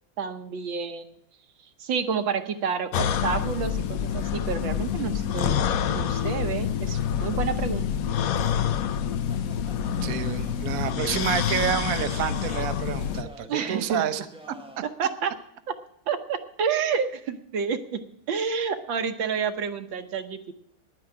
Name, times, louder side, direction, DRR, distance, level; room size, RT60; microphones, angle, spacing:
voice 1, 0.2-1.1 1.8-7.9 13.5-14.0 15.0-15.3 15.7-15.8 16.1-18.0 18.3-20.5, right 6 dB, 75° right, 8 dB, 1.7 m, -29 dB
sound 1, 2.9-13.2, left 8 dB, 65° left, 0.9 m, -27 dB
sound 2, 8.1-14.9, right 1 dB, 5° right, 0.5 m, -49 dB
voice 2, 10.0-14.2, right 10 dB, 60° right, 8 dB, 1.0 m, -29 dB
10.0 x 9.4 x 9.6 m, 0.73 s
omnidirectional pair, 2.2 m